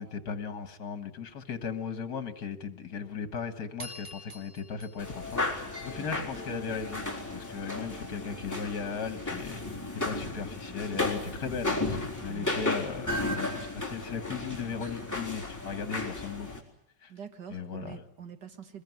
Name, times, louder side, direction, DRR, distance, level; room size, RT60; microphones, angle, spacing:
voice 1, 0.0-7.1 7.3-9.6 9.9-16.5 17.0-17.1 17.5-18.0, left 6 dB, 70° left, 9 dB, 2.2 m, -37 dB
sound 1, 3.8-6.4, equal, 20° right, 3.5 m, -47 dB
sound 2, 5.0-16.6, left 2 dB, 10° left, 4.0 m, -34 dB
voice 2, 17.1-18.8, right 8 dB, 85° right, 7 dB, 2.4 m, -45 dB
23.0 x 21.5 x 9.4 m, 0.75 s
omnidirectional pair, 1.8 m